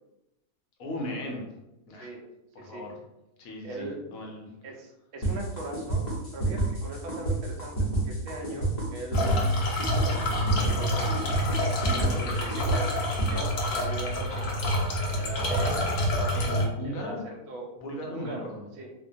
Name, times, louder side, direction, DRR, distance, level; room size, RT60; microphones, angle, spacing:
voice 1, 0.8-1.4 1.9-2.1 2.5-2.9 3.4-4.5 11.8-12.6 16.3-17.2 17.8-18.6, left 1 dB, 70° left, 0 dB, 1.0 m, -37 dB
voice 2, 3.6-4.0 4.6-6.1 6.3-9.4 10.0-11.4 11.9-16.4 16.8-17.7 18.1-18.9, right 2 dB, 70° right, 1 dB, 0.6 m, -40 dB
sound 1, 5.2-13.3, right 2 dB, 40° left, 0.7 m, -28 dB
sound 2, 9.1-16.7, left 1 dB, 85° left, 0.5 m, -27 dB
2.7 x 2.2 x 2.6 m, 0.91 s
omnidirectional pair, 1.7 m